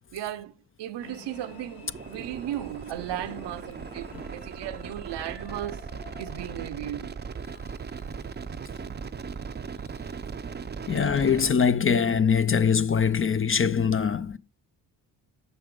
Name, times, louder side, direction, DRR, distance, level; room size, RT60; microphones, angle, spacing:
voice 1, 0.1-0.5 0.8-5.9 6.2-7.2, right 12 dB, 75° right, 0.7 m, -36 dB
sound 1, 1.0-7.3, left 3 dB, 75° left, 3.0 m, -49 dB
sound 2, 1.9-11.5, right 6 dB, 25° right, 0.5 m, -38 dB
voice 2, 10.9-14.4, left 6 dB, 30° left, 0.5 m, -23 dB
7.0 x 5.3 x 5.2 m
cardioid pair, 65°, 43 cm